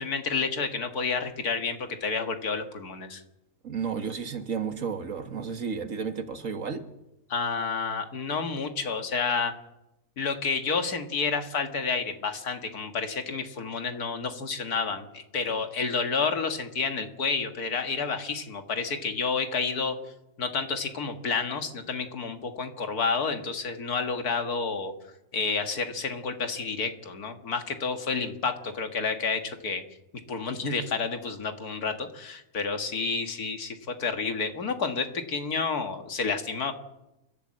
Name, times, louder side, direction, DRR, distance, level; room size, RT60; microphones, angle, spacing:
voice 1, 0.0-3.2 7.3-9.5 10.2-19.9 20.4-24.9 25.3-29.8 30.3-36.7, left 5 dB, 75° left, 6 dB, 2.2 m, -30 dB
voice 2, 3.6-6.8, right 6 dB, 60° right, 8 dB, 1.8 m, -32 dB
29.5 x 12.0 x 7.7 m, 0.94 s
omnidirectional pair, 1.6 m